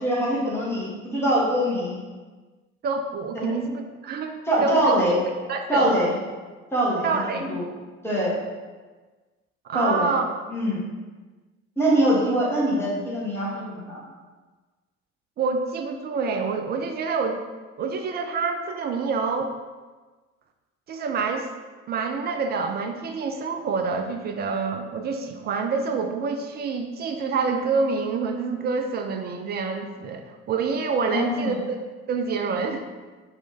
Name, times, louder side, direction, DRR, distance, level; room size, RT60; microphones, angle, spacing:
voice 1, 0.0-2.0 3.3-3.5 4.5-5.2 5.7-6.1 6.7-7.6 8.0-8.4 9.7-10.2 10.5-10.8 11.8-14.0 31.0-31.5, right 1 dB, 5° left, -7 dB, 1.5 m, -23 dB
voice 2, 2.8-4.9 5.5-6.0 7.0-7.5 9.6-10.3 15.4-17.4 17.8-19.5 20.9-21.5 21.9-31.8 32.1-32.9, right 4 dB, 25° right, 4 dB, 0.3 m, -27 dB
4.2 x 3.0 x 3.4 m, 1.3 s
figure-of-eight pair, 55°, 39 cm